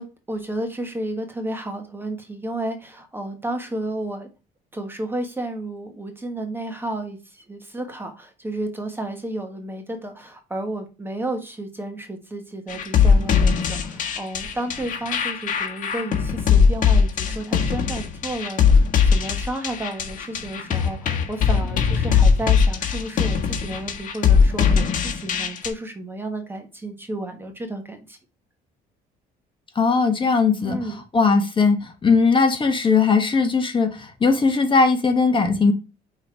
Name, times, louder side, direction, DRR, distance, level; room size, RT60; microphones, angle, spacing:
voice 1, 0.0-4.3 4.7-28.2 30.6-31.0, right 1 dB, 15° right, 1.3 m, -32 dB
sound 1, 12.7-25.7, left 6 dB, 50° left, 1.6 m, -20 dB
voice 2, 29.7-35.7, left 4 dB, 30° left, 1.4 m, -19 dB
5.6 x 4.0 x 4.6 m
cardioid pair, 110°, 17 cm